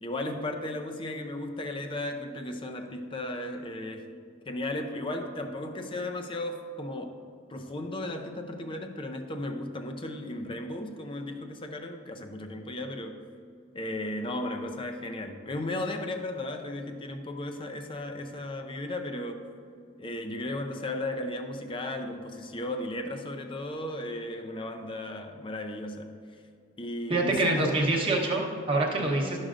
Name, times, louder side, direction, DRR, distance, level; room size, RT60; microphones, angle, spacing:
voice 1, 0.0-4.1 4.5-7.1 7.5-13.2 13.7-19.4 20.0-26.1 26.8-27.8 29.0-29.3, left 1 dB, 25° left, 5 dB, 0.5 m, -35 dB
voice 2, 27.1-29.4, right 2 dB, 25° right, -3 dB, 1.0 m, -26 dB
12.0 x 6.3 x 2.5 m, 2.3 s
head